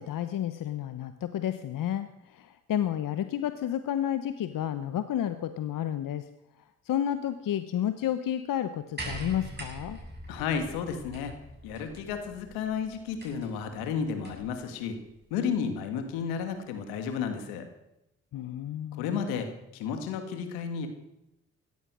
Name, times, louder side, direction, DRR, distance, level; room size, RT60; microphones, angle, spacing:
voice 1, 0.0-6.3 6.8-10.0 18.3-19.2, left 10 dB, 65° left, 11 dB, 1.0 m, -31 dB
sound 1, 9.0-14.6 15.7-15.8, right 1 dB, 30° right, 7.9 m, -43 dB
voice 2, 10.3-11.4 11.6-15.0 15.3-17.7 18.9-20.9, left 6 dB, 90° left, 6 dB, 2.1 m, -32 dB
16.5 x 13.5 x 6.3 m, 0.89 s
hypercardioid pair, 45°, 35 cm